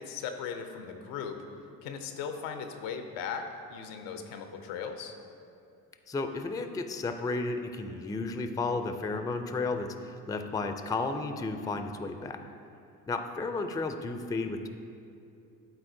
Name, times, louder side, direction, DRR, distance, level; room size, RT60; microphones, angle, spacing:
voice 1, 0.0-1.4 1.8-5.1, left 6 dB, 80° left, 6 dB, 0.7 m, -38 dB
voice 2, 6.1-12.4 13.1-14.7, left 3 dB, 10° left, 7 dB, 0.4 m, -33 dB
12.0 x 4.1 x 2.7 m, 2.5 s
hypercardioid pair, 50°, 46 cm